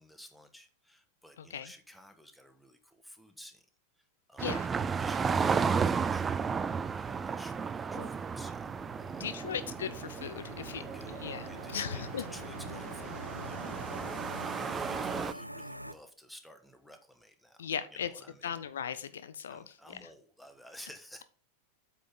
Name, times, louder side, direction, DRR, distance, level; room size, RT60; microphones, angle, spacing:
voice 1, 0.0-3.7 4.0-4.5 4.9-6.2 6.8-8.7 8.9-9.5 10.7-13.8 14.0-18.6 19.5-21.2, equal, ahead, 7 dB, 1.3 m, -54 dB
voice 2, 1.4-1.7 4.4-4.7 8.0-8.1 9.2-12.2 17.6-18.1 18.4-20.0, left 8 dB, 65° left, 13 dB, 0.6 m, -38 dB
sound 1, 4.4-15.3, right 5 dB, 20° right, 0.4 m, -34 dB
sound 2, 8.1-15.9, equal, 90° right, 0.5 m, -46 dB
8.4 x 5.9 x 3.7 m, 0.40 s
figure-of-eight pair, 90°, 0 cm